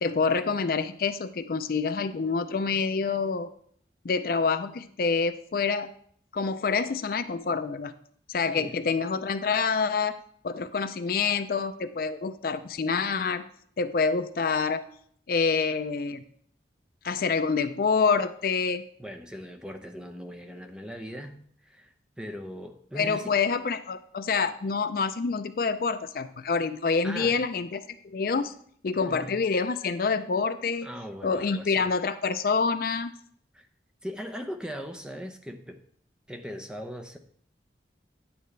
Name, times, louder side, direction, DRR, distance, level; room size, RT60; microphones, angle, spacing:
voice 1, 0.0-3.5 4.0-5.9 6.3-7.9 8.3-10.1 10.4-13.4 13.8-14.8 15.3-16.2 17.0-18.8 22.9-28.5 28.8-30.9 31.2-33.1, left 5 dB, 55° left, 11 dB, 0.4 m, -27 dB
voice 2, 19.0-23.3 27.0-27.4 29.0-29.3 30.8-31.9 33.5-33.7 34.0-35.8 36.3-37.2, equal, 5° right, 5 dB, 0.7 m, -39 dB
10.0 x 8.8 x 3.2 m, 0.62 s
head